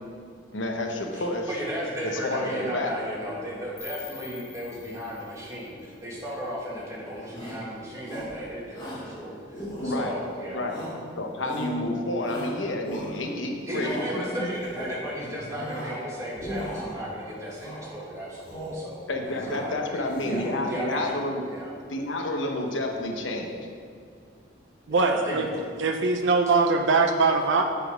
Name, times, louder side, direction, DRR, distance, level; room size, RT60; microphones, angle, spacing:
voice 1, 0.5-1.5 2.0-2.9 9.8-10.2 10.5-10.8 11.2-14.5 19.1-21.4 21.9-23.5, left 1 dB, 85° left, 2 dB, 1.0 m, -30 dB
voice 2, 1.1-10.6 13.7-21.2 21.5-21.7 24.9-25.4, equal, 15° right, -6 dB, 1.8 m, -35 dB
sound 1, 3.8-6.7, left 8 dB, 50° left, 1.9 m, -46 dB
Shout, 7.3-7.7 8.0-8.4 8.7-9.1 9.5-10.2 10.7-11.1 11.4-11.8 12.2-13.3 13.7-14.1 14.5-15.0 15.4-16.0 16.3-17.0 17.5-17.9 18.3-18.9 19.2-19.7 20.0-20.8, equal, 25° left, 2.3 m, -37 dB
voice 3, 24.9-25.5 25.8-27.6, right 4 dB, 75° right, 4 dB, 0.5 m, -22 dB
8.0 x 5.7 x 5.0 m, 2.3 s
head